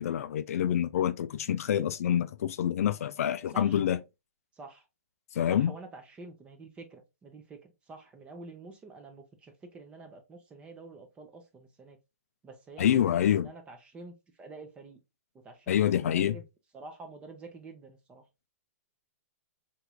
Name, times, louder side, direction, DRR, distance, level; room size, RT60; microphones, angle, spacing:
voice 1, 0.0-4.0 5.3-5.7 12.8-13.5 15.7-16.4, left 10 dB, 65° left, 0.4 m, -27 dB
voice 2, 3.5-3.8 4.6-4.9 5.5-12.0 12.4-12.9 13.2-15.0 15.4-16.4 16.7-18.2, right 3 dB, 15° right, 0.6 m, -48 dB
4.4 x 3.0 x 2.2 m
hypercardioid pair, 150°, 8 cm